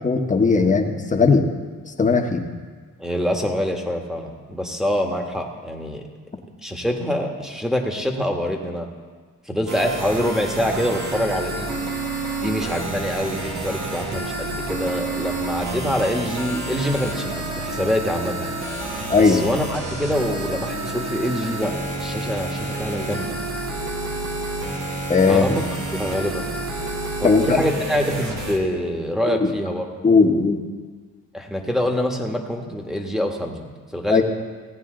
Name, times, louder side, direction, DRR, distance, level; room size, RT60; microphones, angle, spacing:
voice 1, 0.0-1.4 2.0-2.4 19.1-19.4 25.1-25.4 27.2-27.6 29.3-29.5 30.0-30.6 34.1-34.2, left 4 dB, 25° left, 3 dB, 1.3 m, -17 dB
voice 2, 3.0-6.0 6.6-8.9 9.4-11.7 12.3-18.5 19.2-21.7 22.0-23.4 25.3-25.6 25.9-26.5 27.2-29.9 31.3-34.2, equal, ahead, 1 dB, 1.6 m, -25 dB
sound 1, 9.7-28.6, right 2 dB, 85° right, 1.9 m, -29 dB
16.5 x 9.1 x 3.9 m, 1.5 s
cardioid pair, 90°, 30 cm